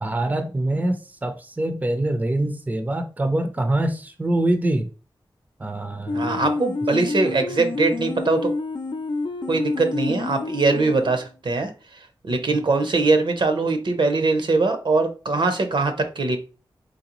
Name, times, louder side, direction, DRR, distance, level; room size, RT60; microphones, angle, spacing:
voice 1, 0.0-4.9 5.6-6.4, right 1 dB, 20° right, 7 dB, 0.5 m, -24 dB
sound 1, 6.1-11.3, left 3 dB, 65° left, 0.5 m, -28 dB
voice 2, 6.1-8.5 9.5-11.7 12.2-16.4, right 3 dB, 65° right, 7 dB, 0.7 m, -22 dB
3.9 x 3.1 x 3.0 m, 0.35 s
wide cardioid pair, 95°, 9 cm